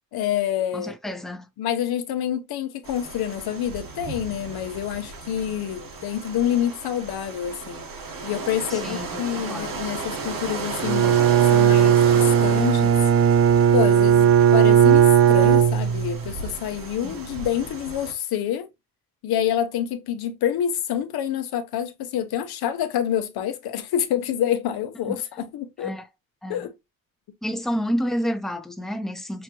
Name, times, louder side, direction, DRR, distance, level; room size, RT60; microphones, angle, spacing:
voice 1, 0.1-0.9 1.6-7.8 8.2-13.0 13.7-18.7 19.2-25.9 26.5-26.8, left 10 dB, 85° left, 0.7 m, -27 dB
voice 2, 0.7-1.5 8.7-9.7 17.0-17.1 25.1-25.2 25.8-26.0 26.4-26.6 27.4-29.4, equal, ahead, 0.7 m, -29 dB
sound 1, 2.8-18.1, right 4 dB, 65° right, 1.5 m, -35 dB
Bowed string instrument, 10.8-16.3, right 8 dB, 45° right, 0.4 m, -17 dB
6.2 x 2.2 x 3.0 m
cardioid pair, 80°, 36 cm